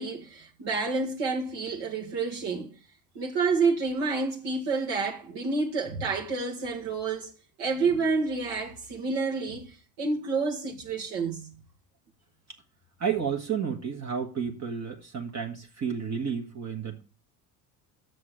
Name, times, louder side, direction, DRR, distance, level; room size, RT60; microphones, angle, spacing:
voice 1, 0.0-2.7 3.2-7.3 7.6-11.5, right 4 dB, 60° right, 1.9 m, -29 dB
voice 2, 13.0-17.0, right 7 dB, 35° right, 1.5 m, -31 dB
6.7 x 6.3 x 7.5 m
hypercardioid pair, 80°, 47 cm